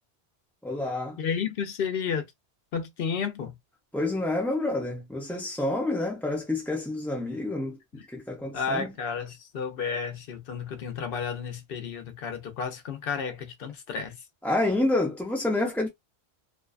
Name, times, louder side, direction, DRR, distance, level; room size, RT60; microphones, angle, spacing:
voice 1, 0.6-1.2 3.9-8.9 14.4-15.9, left 2 dB, 5° left, 0.3 m, -28 dB
voice 2, 1.2-2.3 2.7-3.5 8.5-14.2, left 6 dB, 60° left, 0.8 m, -32 dB
2.6 x 2.2 x 2.3 m
omnidirectional pair, 1.1 m